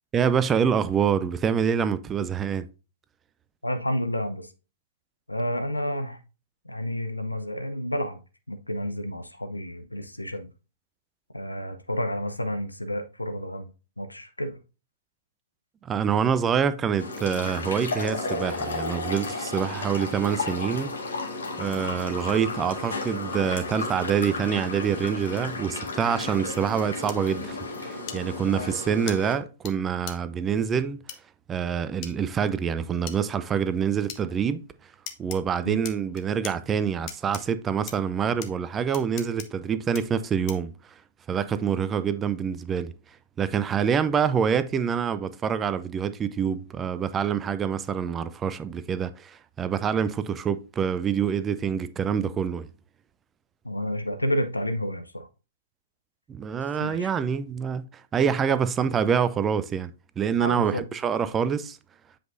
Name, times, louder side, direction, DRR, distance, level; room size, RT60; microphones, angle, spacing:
voice 1, 0.1-2.7 15.8-20.9 21.6-31.0 31.5-34.6 35.2-40.7 41.3-42.9 43.4-52.7 56.3-59.9 60.2-61.8, right 7 dB, 15° right, 0.4 m, -26 dB
voice 2, 3.6-4.5 5.3-6.2 6.7-8.2 8.5-10.5 11.3-13.7 14.0-14.6 35.6-35.8 53.6-55.3 56.8-57.1 60.4-60.8, equal, 85° left, 0.8 m, -30 dB
sound 1, 17.0-29.3, left 3 dB, 65° left, 1.6 m, -33 dB
sound 2, 27.1-27.2 28.1-28.2 29.1-29.2 29.7-29.8 30.1-30.2 31.1-31.2 32.0-32.1 33.1-33.2 34.1-34.2 35.1-35.4 35.8-36.5 37.1-37.4 37.9-38.0 38.4-38.5 38.9-39.5 39.9-40.0 40.5-40.7, left 9 dB, 35° left, 0.8 m, -37 dB
7.7 x 5.0 x 2.6 m
figure-of-eight pair, 115°, 0 cm